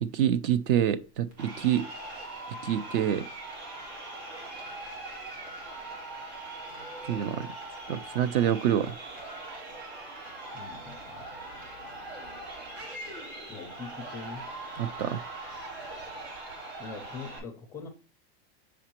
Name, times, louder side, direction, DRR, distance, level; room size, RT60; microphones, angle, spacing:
voice 1, 0.0-1.9 2.6-3.3 7.0-7.5 7.9-8.9 14.8-15.2, right 10 dB, 55° right, 0.6 m, -27 dB
Crowd, 1.3-17.4, right 2 dB, 85° right, 3.5 m, -41 dB
voice 2, 10.5-11.3 13.5-14.5 16.8-17.9, left 4 dB, 10° left, 0.4 m, -42 dB
7.0 x 5.0 x 2.9 m
supercardioid pair, 170°, 32 cm